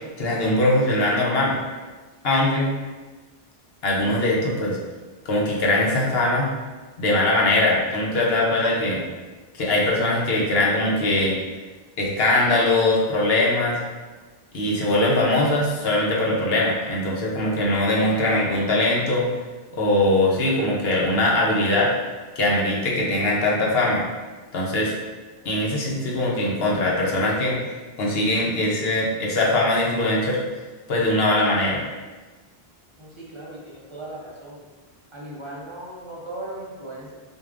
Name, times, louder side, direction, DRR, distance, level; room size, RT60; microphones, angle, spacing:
voice 1, 0.2-1.6 2.2-2.7 3.8-4.8 5.2-6.5 7.0-9.0 9.5-11.4 12.0-13.8 14.5-19.3 19.7-21.9 22.4-24.0 24.5-24.9 25.4-27.6 28.0-30.4 30.9-31.8, left 1 dB, 80° left, -3 dB, 1.1 m, -21 dB
voice 2, 33.0-34.6 35.1-37.1, right 1 dB, 30° right, -5 dB, 0.8 m, -37 dB
6.3 x 2.5 x 2.5 m, 1.3 s
omnidirectional pair, 1.0 m